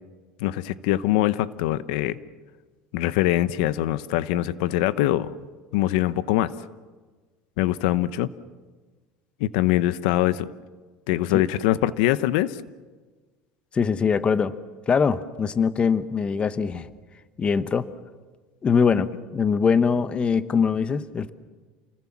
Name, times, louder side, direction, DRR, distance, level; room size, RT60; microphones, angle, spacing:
voice 1, 0.4-2.2 2.9-5.3 5.7-6.5 7.6-8.3 9.4-10.5 11.1-12.6, left 14 dB, 85° left, 15 dB, 0.8 m, -23 dB
voice 2, 13.7-14.5 14.9-16.9 17.4-17.9 18.6-21.3, left 6 dB, 25° left, 13 dB, 1.0 m, -22 dB
29.0 x 20.5 x 7.4 m, 1.4 s
cardioid pair, 135°, 4 cm